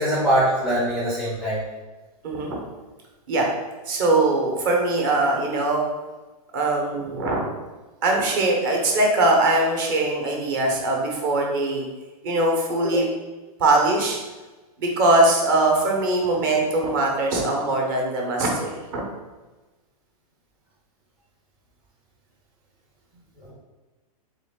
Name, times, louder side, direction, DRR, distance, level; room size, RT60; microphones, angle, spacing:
voice 1, 0.0-1.6 12.9-13.0, right 1 dB, ahead, -7 dB, 0.5 m, -22 dB
voice 2, 2.2-2.6 3.3-3.5 3.9-5.8 6.5-7.4 8.0-11.9 12.2-13.0 13.6-14.2 14.8-19.0, right 2 dB, 35° right, 0 dB, 0.9 m, -21 dB
3.7 x 3.6 x 3.7 m, 1.2 s
hypercardioid pair, 170°, 20 cm